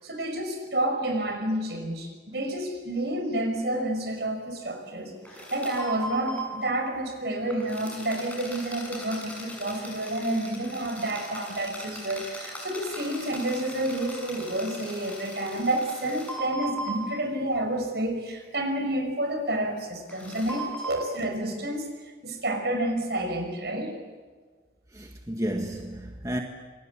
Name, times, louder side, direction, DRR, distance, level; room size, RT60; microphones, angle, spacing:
voice 1, 0.0-5.2 5.5-23.9, right 1 dB, 65° right, 5.7 m, -29 dB
sound 1, 5.2-6.4 7.5-17.0 17.8-17.9 20.1-20.9, right 1 dB, 10° left, 6.6 m, -39 dB
voice 2, 24.9-26.4, right 1 dB, 20° right, 1.7 m, -32 dB
27.5 x 22.5 x 8.5 m
head